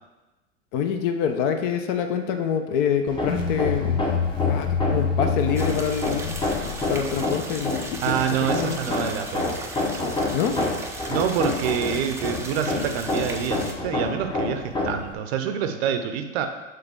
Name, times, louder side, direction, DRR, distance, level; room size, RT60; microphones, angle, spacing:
voice 1, 0.7-4.0 4.5-6.4 6.9-8.0 8.5-8.8 10.3-10.6, left 7 dB, 45° left, 6 dB, 0.7 m, -26 dB
Hammer, 3.1-15.1, left 2 dB, 10° left, 0.8 m, -29 dB
sound 1, 3.3-7.6, left 5 dB, 75° left, 0.9 m, -27 dB
sound 2, 5.5-13.7, right 2 dB, 5° right, 0.5 m, -38 dB
voice 2, 8.0-9.5 11.1-16.5, right 8 dB, 50° right, 7 dB, 0.7 m, -26 dB
6.6 x 4.0 x 3.6 m, 1.1 s
figure-of-eight pair, 95°, 39 cm